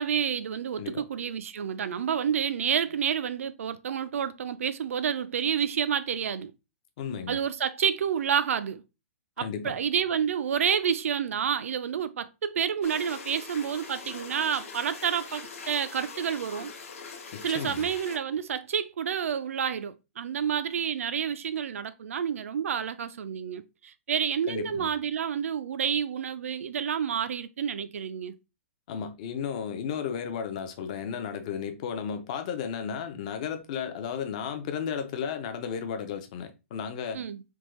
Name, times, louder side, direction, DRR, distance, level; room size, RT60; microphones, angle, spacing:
voice 1, 0.0-6.5 7.3-8.8 9.4-16.7 17.4-28.3 37.1-37.4, right 8 dB, 70° right, 0.4 m, -29 dB
voice 2, 7.0-7.4 9.4-9.8 17.3-17.9 24.5-24.9 28.9-37.2, left 7 dB, 30° left, 0.4 m, -34 dB
sound 1, 12.8-18.2, left 5 dB, 65° left, 0.7 m, -42 dB
3.5 x 2.2 x 3.0 m
hypercardioid pair, 170°, 8 cm